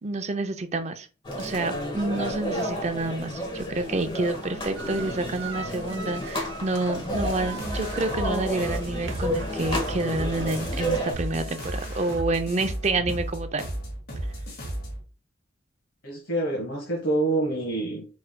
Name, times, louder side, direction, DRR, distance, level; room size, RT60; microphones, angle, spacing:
voice 1, 0.0-1.1 1.4-13.7, right 2 dB, 35° right, 0.5 m, -28 dB
sound 1, 1.2-11.1, equal, 25° left, 1.1 m, -31 dB
sound 2, 4.8-12.2, right 4 dB, 80° right, 0.8 m, -42 dB
sound 3, 7.1-15.0, right 1 dB, 50° left, 1.6 m, -34 dB
voice 2, 16.0-18.1, right 2 dB, 80° left, 1.5 m, -27 dB
4.8 x 4.6 x 2.2 m
head